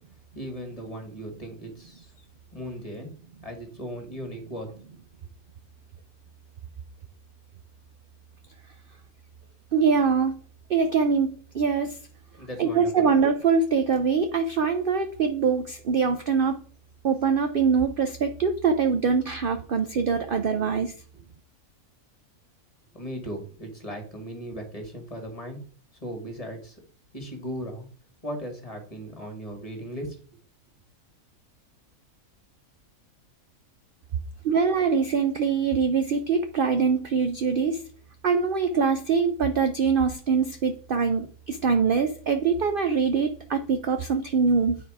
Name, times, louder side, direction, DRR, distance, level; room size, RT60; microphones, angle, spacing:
voice 1, 0.3-2.1 2.5-3.1 3.4-4.7 12.4-13.1 22.9-25.6 26.0-26.8 27.1-27.9 28.2-30.2, equal, 25° left, 3 dB, 1.9 m, -37 dB
voice 2, 9.7-10.4 10.7-12.0 12.6-16.6 17.0-20.9 34.4-37.8 38.2-44.8, right 5 dB, 55° right, 7 dB, 0.6 m, -23 dB
9.3 x 4.0 x 4.8 m, 0.43 s
omnidirectional pair, 1.6 m